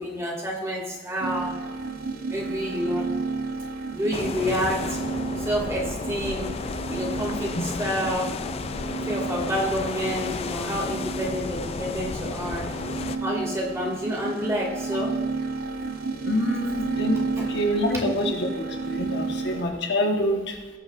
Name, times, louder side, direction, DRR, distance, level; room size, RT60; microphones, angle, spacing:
voice 1, 0.0-1.6 2.3-3.1 3.9-6.5 6.9-8.3 9.1-12.7 13.2-15.2, equal, 15° right, -3 dB, 2.2 m, -29 dB
sound 1, 1.2-19.6, right 4 dB, 55° right, 0.7 m, -32 dB
sound 2, 4.1-13.2, left 4 dB, 35° left, 0.3 m, -33 dB
voice 2, 16.2-20.6, left 1 dB, 65° left, 2 dB, 1.3 m, -26 dB
18.5 x 6.3 x 2.5 m, 1.3 s
head